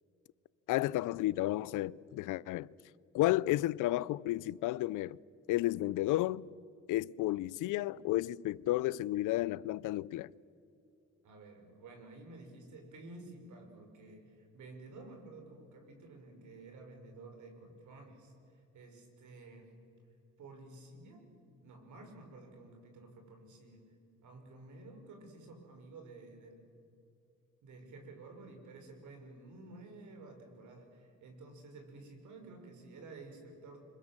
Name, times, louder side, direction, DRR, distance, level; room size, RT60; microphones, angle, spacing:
voice 1, 0.7-2.7 3.1-5.2 5.5-6.5 6.9-10.3, left 16 dB, 85° left, 0.5 m, -32 dB
voice 2, 11.2-18.3 18.7-19.7 20.4-21.2 21.6-23.8 24.2-26.7 27.6-33.8, right 2 dB, 75° right, 5.9 m, -52 dB
25.0 x 24.0 x 7.5 m
cardioid pair, 90°, 30 cm